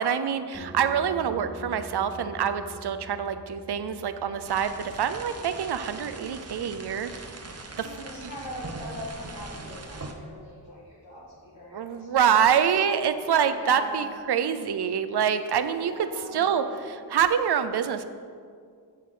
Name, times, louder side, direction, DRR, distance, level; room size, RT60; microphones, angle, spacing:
voice 1, 0.0-7.1 7.8-7.9 8.2-8.3 11.7-18.0, right 8 dB, 70° right, 11 dB, 0.6 m, -26 dB
sound 1, 0.5-11.9, right 3 dB, 10° right, 0.9 m, -47 dB
sound 2, 4.4-10.1, right 2 dB, 35° right, 0.9 m, -41 dB
voice 2, 7.7-12.7 13.0-13.2 13.6-14.1 15.7-17.0, equal, 75° left, -9 dB, 1.9 m, -41 dB
7.8 x 7.4 x 3.8 m, 2.2 s
wide cardioid pair, 70°, 42 cm